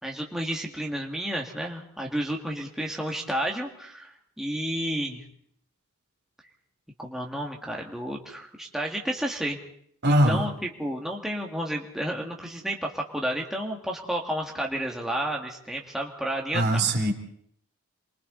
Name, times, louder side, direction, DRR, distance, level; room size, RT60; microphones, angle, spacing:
voice 1, 0.0-5.2 7.0-9.6 10.3-16.8, right 1 dB, ahead, -1 dB, 2.1 m, -31 dB
voice 2, 10.0-10.4 16.5-17.1, right 1 dB, 55° right, 4 dB, 3.0 m, -21 dB
28.0 x 23.0 x 4.1 m, 0.64 s
head